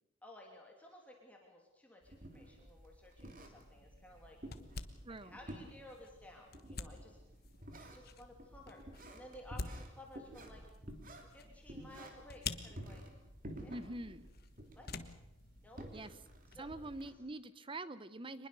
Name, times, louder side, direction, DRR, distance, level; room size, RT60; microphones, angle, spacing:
voice 1, 0.2-4.4 5.1-7.2 7.8-8.8 9.1-10.7 11.3-13.1 13.6-13.8 14.7-15.0 15.6-15.9 16.5-16.7, left 1 dB, 5° left, -1 dB, 2.8 m, -56 dB
sound 1, 2.0-17.1, right 1 dB, 40° right, 2.9 m, -52 dB
sound 2, 3.2-16.7, left 4 dB, 50° left, 1.3 m, -50 dB
voice 2, 5.0-5.4 13.7-14.3 15.9-16.2 16.6-18.5, right 2 dB, 25° right, 14 dB, 0.7 m, -45 dB
24.5 x 21.0 x 6.8 m, 0.91 s
head